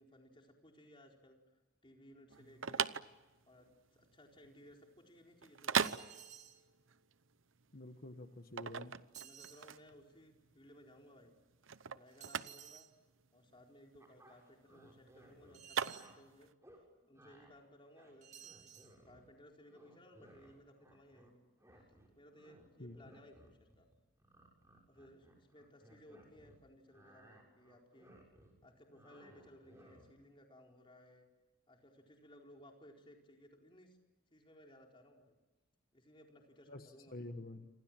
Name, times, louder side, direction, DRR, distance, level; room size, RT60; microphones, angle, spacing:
voice 1, 0.0-1.4 1.8-3.0 3.5-6.2 9.2-11.4 11.9-12.9 13.3-16.5 17.0-18.8 19.0-21.5 22.1-23.9 24.9-28.1 28.6-31.3 31.7-34.0 34.3-35.4 35.9-37.3, equal, 25° left, 1 dB, 4.4 m, -61 dB
sound 1, 2.3-16.5, right 7 dB, 75° right, 0.9 m, -40 dB
sound 2, 5.8-6.6 9.1-9.7 12.2-12.9 15.5-16.2 18.2-18.9, right 9 dB, 35° right, 2.1 m, -55 dB
voice 2, 7.7-8.9 22.8-23.0 36.7-37.7, left 1 dB, 45° left, 7 dB, 1.4 m, -48 dB
sound 3, 14.0-16.1 16.6-16.8 17.1-17.5 17.8-19.4 19.6-21.3 21.6-26.6 26.9-30.2, right 1 dB, 15° right, 6.9 m, -62 dB
28.5 x 26.5 x 7.6 m, 1.1 s
head